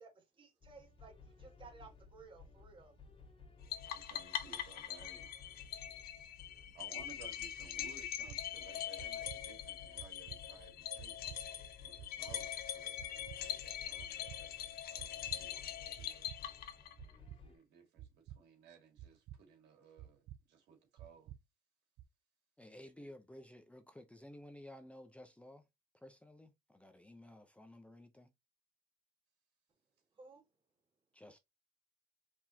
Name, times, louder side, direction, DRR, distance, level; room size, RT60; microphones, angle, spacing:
voice 1, 0.0-3.0 30.1-30.4, right 4 dB, 30° right, 1.8 m, -57 dB
sound 1, 0.6-17.6, left 4 dB, 35° left, 1.9 m, -58 dB
sound 2, 3.7-17.1, left 11 dB, 65° left, 0.9 m, -43 dB
voice 2, 3.9-5.3 6.7-11.4 11.8-12.5 12.7-16.3 17.4-21.3, right 6 dB, 85° right, 2.3 m, -59 dB
sound 3, 8.0-8.4 9.0-9.4 10.0-10.4 11.0-11.4 12.0-12.4 13.0-13.4 14.0-14.4 15.0-15.4 16.0-16.4 17.0-17.4 18.0-18.4 19.0-19.4 20.0-20.4 21.0-21.4 22.0-22.1, right 12 dB, 70° right, 0.5 m, -51 dB
voice 3, 22.6-25.7 25.9-28.3 31.1-31.4, left 1 dB, 5° left, 0.7 m, -54 dB
4.7 x 3.6 x 2.8 m
cardioid pair, 110°, 17 cm